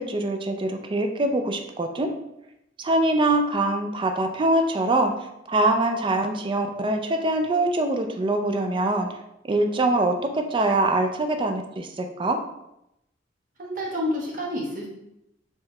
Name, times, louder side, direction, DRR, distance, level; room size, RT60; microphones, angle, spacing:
voice 1, 0.0-2.1 2.8-5.1 5.5-9.1 9.4-12.4, right 2 dB, 25° right, 5 dB, 0.4 m, -23 dB
voice 2, 13.6-14.9, left 1 dB, 45° right, -3 dB, 1.2 m, -29 dB
4.7 x 3.2 x 3.2 m, 0.84 s
head